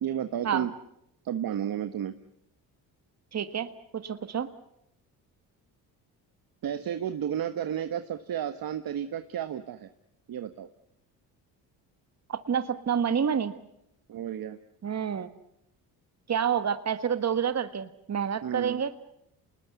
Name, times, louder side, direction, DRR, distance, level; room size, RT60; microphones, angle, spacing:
voice 1, 0.0-0.7 1.2-2.1 6.6-9.9 10.3-10.7 14.1-14.6 18.4-18.8, right 9 dB, 55° right, 10 dB, 1.4 m, -32 dB
voice 2, 3.3-4.5 12.3-13.5 14.8-15.3 16.3-19.0, right 7 dB, 40° right, 11 dB, 1.6 m, -28 dB
27.5 x 20.5 x 8.1 m, 0.79 s
supercardioid pair, 70°, 41 cm